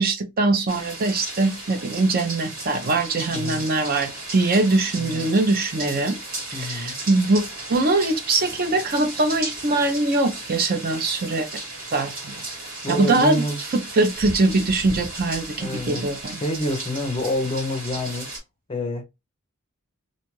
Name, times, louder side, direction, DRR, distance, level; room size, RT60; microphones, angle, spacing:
voice 1, 0.0-6.2 6.5-7.4 7.7-11.5 11.9-12.3 12.9-13.4 13.7-16.4, right 2 dB, 45° right, 0.5 m, -22 dB
sound 1, 0.7-18.4, right 2 dB, 80° right, 1.8 m, -35 dB
voice 2, 3.3-3.6 5.0-5.3 6.5-7.0 12.8-13.6 15.6-16.1 16.4-18.3 18.7-19.0, left 1 dB, 25° left, 0.5 m, -27 dB
2.6 x 2.3 x 3.0 m
head